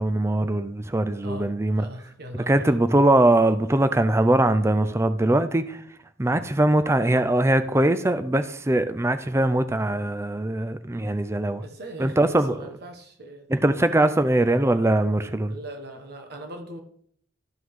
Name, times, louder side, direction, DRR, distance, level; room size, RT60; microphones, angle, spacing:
voice 1, 0.0-1.9 2.5-5.8 6.2-11.6 12.0-12.6 13.5-15.5, right 1 dB, 15° right, 0.5 m, -21 dB
voice 2, 1.8-2.8 11.6-13.4 14.0-14.2 15.5-16.8, right 1 dB, 55° right, 1.4 m, -40 dB
13.0 x 6.0 x 3.7 m
head